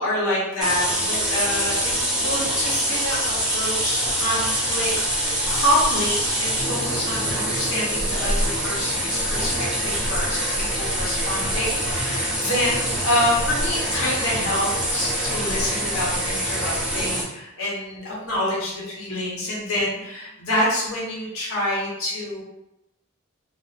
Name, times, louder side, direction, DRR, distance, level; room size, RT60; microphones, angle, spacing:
voice 1, 0.0-22.4, left 1 dB, 70° left, -5 dB, 0.9 m, -27 dB
sound 1, 0.6-17.2, equal, 5° right, 0.5 m, -24 dB
2.6 x 2.0 x 2.4 m, 0.85 s
head